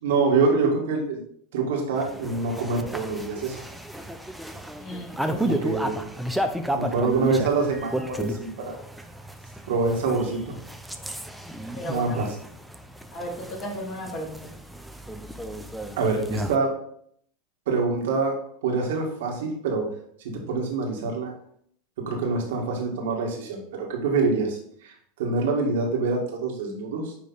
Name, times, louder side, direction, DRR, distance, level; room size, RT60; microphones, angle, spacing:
voice 1, 0.0-1.2 1.5-3.6 5.4-6.0 6.7-8.8 9.7-10.5 11.9-12.3 16.0-16.7 17.7-18.4 18.6-19.9 20.3-21.3 22.0-27.1, right 4 dB, 70° right, 0 dB, 2.0 m, -25 dB
sound 1, 2.0-16.6, right 1 dB, ahead, 0.6 m, -33 dB
voice 2, 4.8-5.7 11.7-12.2 13.1-14.6, equal, 35° left, -1 dB, 2.5 m, -35 dB
9.2 x 3.3 x 4.0 m, 0.65 s
hypercardioid pair, 95°, 0 cm